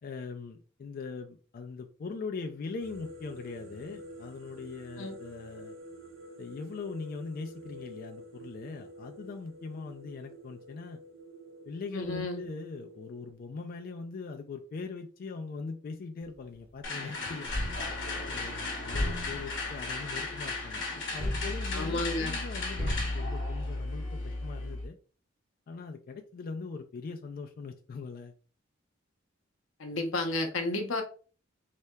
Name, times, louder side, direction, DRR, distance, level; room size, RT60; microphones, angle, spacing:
voice 1, 0.0-5.7 6.4-11.0 11.7-17.5 18.3-20.9 21.1-25.0 25.7-28.3, left 4 dB, 45° left, 0.3 m, -41 dB
sound 1, 2.8-13.3, right 1 dB, 80° right, 0.7 m, -49 dB
voice 2, 11.9-12.4 21.7-22.3 29.8-31.0, left 2 dB, 90° left, 0.7 m, -32 dB
sound 2, 16.8-24.8, left 3 dB, 65° left, 0.9 m, -37 dB
sound 3, 17.4-24.9, left 1 dB, 50° right, 1.5 m, -35 dB
3.3 x 2.7 x 2.2 m
head